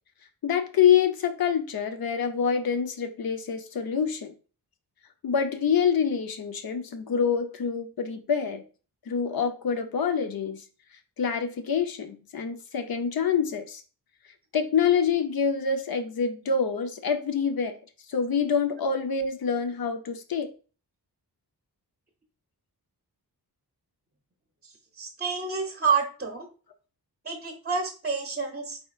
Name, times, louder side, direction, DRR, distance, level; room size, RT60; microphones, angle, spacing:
voice 1, 0.4-4.3 5.2-8.6 9.1-10.6 11.2-13.8 14.5-17.8 18.1-20.5, left 7 dB, 65° left, 8 dB, 0.7 m, -26 dB
voice 2, 24.6-26.5 27.2-28.8, right 5 dB, 25° right, 2 dB, 0.6 m, -29 dB
4.4 x 4.2 x 2.4 m, 0.36 s
wide cardioid pair, 140°, 39 cm